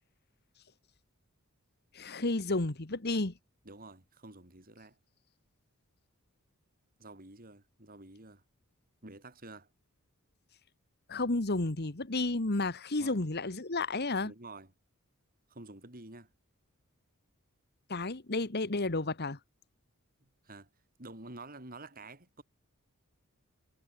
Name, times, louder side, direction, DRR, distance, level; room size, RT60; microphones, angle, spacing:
voice 1, 1.9-3.3 11.1-14.3 17.9-19.4, left 2 dB, 45° left, 1.5 m, -32 dB
voice 2, 3.6-5.0 7.0-8.4 9.0-9.7 13.0-13.2 14.2-14.7 15.5-16.3 20.2-20.7 21.0-22.4, right 2 dB, 40° right, 4.5 m, -49 dB
head